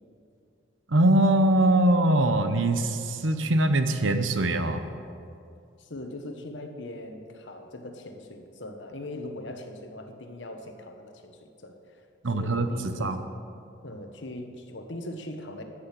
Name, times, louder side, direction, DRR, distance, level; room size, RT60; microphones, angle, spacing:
voice 1, 0.9-4.8 12.2-13.2, right 1 dB, 90° right, 9 dB, 0.9 m, -22 dB
voice 2, 5.8-12.0 12.3-13.3 13.8-15.6, left 1 dB, 75° left, 5 dB, 1.3 m, -40 dB
14.5 x 6.4 x 8.4 m, 2.5 s
head